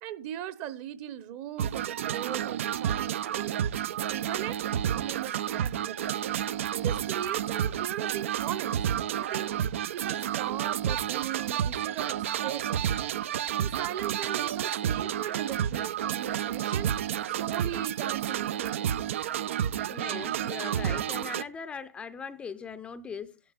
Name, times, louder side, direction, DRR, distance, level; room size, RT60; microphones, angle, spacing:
voice 1, 0.0-4.6 4.9-6.2 6.7-8.8 9.1-9.5 9.9-12.9 13.6-16.9 17.3-19.0, right 11 dB, 35° right, 1.0 m, -39 dB
sound 1, 1.6-21.4, right 10 dB, 55° right, 0.5 m, -30 dB
voice 2, 19.9-23.4, left 6 dB, 10° left, 0.6 m, -40 dB
15.5 x 11.5 x 2.4 m
figure-of-eight pair, 115°, 8 cm